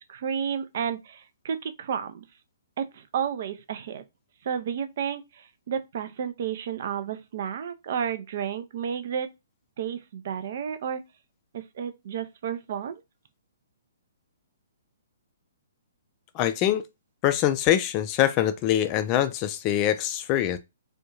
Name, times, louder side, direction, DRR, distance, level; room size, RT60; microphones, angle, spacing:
voice 1, 0.1-2.2 2.8-4.0 4.4-9.3 9.8-11.0 11.5-13.0, right 8 dB, 45° right, 0.4 m, -31 dB
voice 2, 16.3-16.8 17.2-20.6, left 11 dB, 25° left, 0.3 m, -24 dB
3.4 x 2.2 x 2.8 m
figure-of-eight pair, 120°, 0 cm